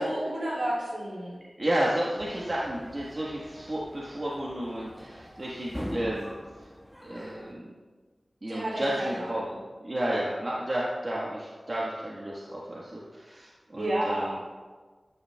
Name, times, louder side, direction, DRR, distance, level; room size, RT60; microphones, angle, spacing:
voice 1, 0.0-1.4 8.5-9.6 13.8-14.4, right 1 dB, 70° right, -4 dB, 2.8 m, -31 dB
voice 2, 1.6-6.3 7.0-7.7 8.4-9.5 9.8-14.4, right 1 dB, 45° right, -6 dB, 1.4 m, -32 dB
sound 1, 2.2-7.5, equal, ahead, 1.5 m, -43 dB
11.0 x 8.8 x 2.3 m, 1.4 s
wide cardioid pair, 45°, 0 cm